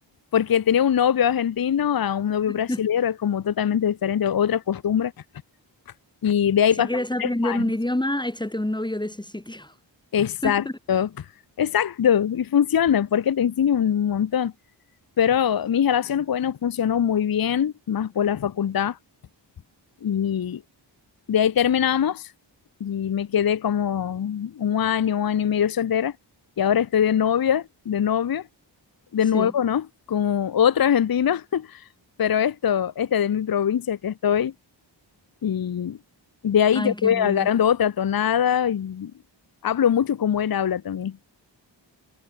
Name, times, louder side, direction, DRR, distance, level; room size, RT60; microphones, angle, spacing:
voice 1, 0.3-5.1 6.2-6.9 7.2-7.6 10.1-11.3 11.6-14.5 15.2-19.0 20.0-20.6 21.3-22.3 22.8-26.1 26.6-28.4 29.1-31.8 32.2-34.5 35.4-36.0 36.4-39.1 39.6-41.2, left 9 dB, 50° left, 0.7 m, -22 dB
voice 2, 2.5-2.8 6.8-9.7 10.4-10.8 29.3-29.5 36.7-37.5, left 1 dB, 10° left, 2.4 m, -27 dB
wide cardioid pair, 145°, 45 cm